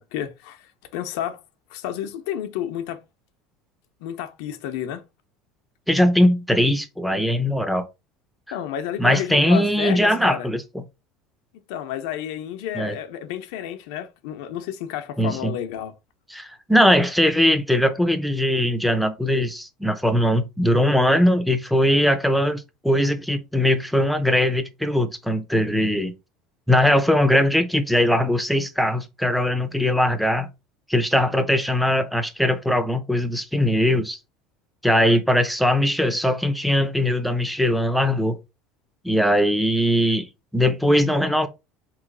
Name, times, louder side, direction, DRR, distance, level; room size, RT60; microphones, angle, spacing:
voice 1, 0.0-1.4 1.7-3.0 4.0-5.0 8.5-10.5 11.7-15.9, left 10 dB, 75° left, 0.7 m, -31 dB
voice 2, 5.9-7.8 9.0-10.8 12.7-13.0 15.2-15.5 16.3-26.1 26.7-30.5 30.9-34.2 34.8-38.4 39.0-40.3 40.5-41.5, left 1 dB, ahead, 0.6 m, -20 dB
3.9 x 3.1 x 3.8 m
supercardioid pair, 120°, 0 cm